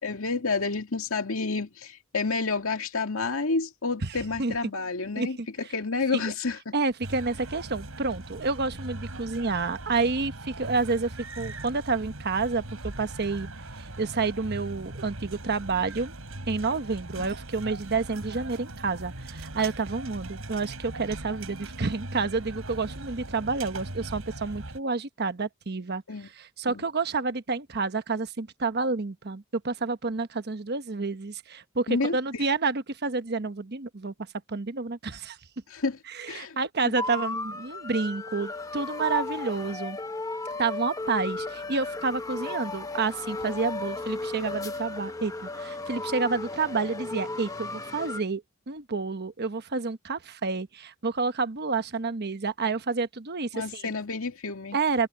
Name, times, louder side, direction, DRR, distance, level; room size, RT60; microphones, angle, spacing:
voice 1, 0.0-6.7 17.2-17.3 26.1-26.3 26.7-26.8 31.9-32.4 35.7-36.0 36.3-36.6 36.8-36.9 53.5-54.8, left 4 dB, 85° left, 2.1 m, -30 dB
voice 2, 5.2-5.5 6.7-13.5 14.0-16.1 16.5-26.0 26.3-34.1 34.5-35.4 36.1-40.0 40.6-53.9 54.7-55.1, right 4 dB, 50° right, 1.1 m, -29 dB
sound 1, 7.0-24.8, right 2 dB, 85° right, 4.4 m, -40 dB
sound 2, 37.0-48.2, left 3 dB, 15° left, 1.1 m, -35 dB
head